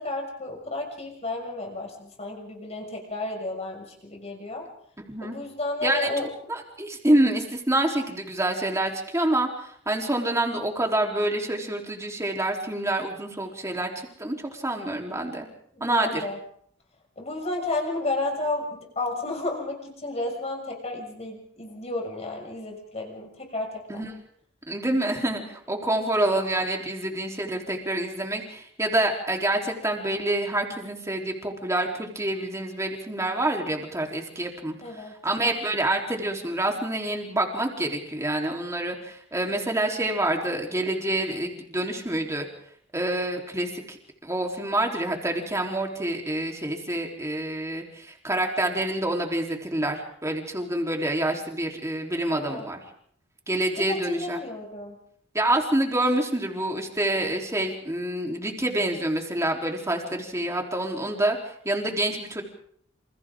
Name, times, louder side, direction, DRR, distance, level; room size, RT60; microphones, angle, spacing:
voice 1, 0.0-4.6 5.2-6.3 15.7-16.4 17.2-24.0 34.8-35.2 52.3-52.7 53.9-55.0, left 2 dB, 35° left, 1 dB, 6.4 m, -32 dB
voice 2, 5.8-15.5 15.8-16.2 23.9-24.1 24.7-34.7 35.2-42.5 42.9-44.0 44.2-52.8 53.5-54.4 55.3-61.4 61.6-62.4, right 1 dB, 15° right, 1 dB, 3.8 m, -27 dB
28.5 x 28.0 x 3.8 m, 0.64 s
head